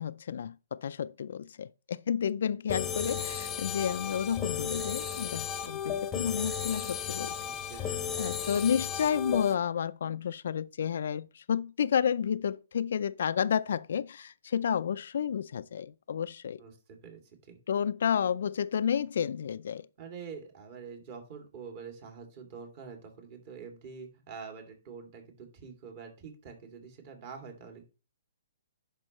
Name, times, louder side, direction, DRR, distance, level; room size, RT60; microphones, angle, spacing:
voice 1, 0.0-7.4 8.2-16.6 17.7-19.9, left 8 dB, 65° left, 0.4 m, -31 dB
sound 1, 2.7-9.5, left 8 dB, 10° left, 0.9 m, -34 dB
voice 2, 7.4-8.4 16.6-17.6 20.0-27.9, right 5 dB, 35° right, 2.4 m, -46 dB
10.5 x 5.3 x 3.0 m
hypercardioid pair, 160°, 0 cm